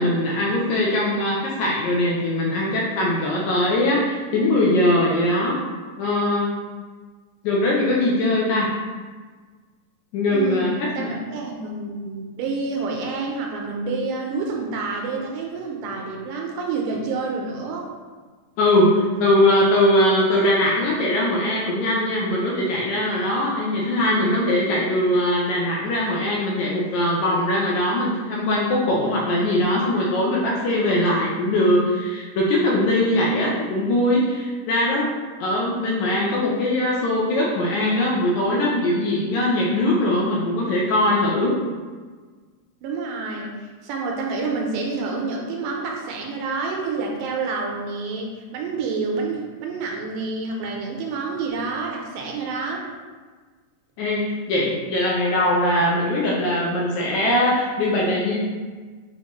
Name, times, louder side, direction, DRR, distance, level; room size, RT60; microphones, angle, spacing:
voice 1, 0.0-5.6 6.0-6.5 7.4-8.7 10.1-11.1 18.6-35.1 35.4-41.5 54.0-58.4, left 1 dB, 75° left, -4 dB, 1.8 m, -21 dB
voice 2, 10.3-10.7 11.0-17.9 42.8-43.5 43.8-52.8, right 4 dB, 85° right, 0 dB, 2.2 m, -28 dB
6.4 x 2.8 x 3.0 m, 1.4 s
omnidirectional pair, 3.8 m